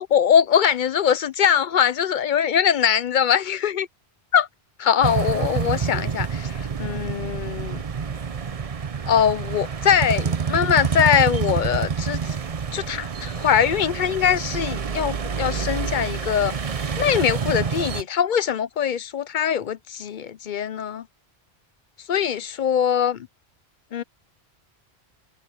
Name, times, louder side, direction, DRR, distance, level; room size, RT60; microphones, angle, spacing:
voice 1, 0.0-3.9 4.3-4.4 4.8-7.8 9.1-12.3 12.7-16.5 17.0-21.0 22.1-23.3 23.9-24.0, left 8 dB, 55° left, 0.7 m, -22 dB
sound 1, 5.0-18.0, right 6 dB, 40° right, 0.7 m, -27 dB
omnidirectional pair, 1.1 m